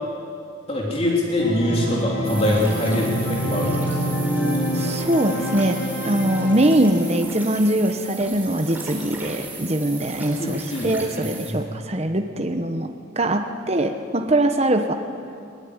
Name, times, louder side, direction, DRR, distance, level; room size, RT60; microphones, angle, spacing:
voice 1, 0.7-4.2 10.4-11.6, left 1 dB, 30° left, -2 dB, 3.1 m, -24 dB
Organ, 1.4-7.1, equal, 70° left, 4.9 m, -26 dB
sound 1, 2.2-11.5, right 2 dB, 10° right, 3.9 m, -38 dB
voice 2, 4.7-14.9, right 1 dB, 35° right, 5 dB, 1.1 m, -22 dB
21.5 x 19.0 x 9.8 m, 2.4 s
head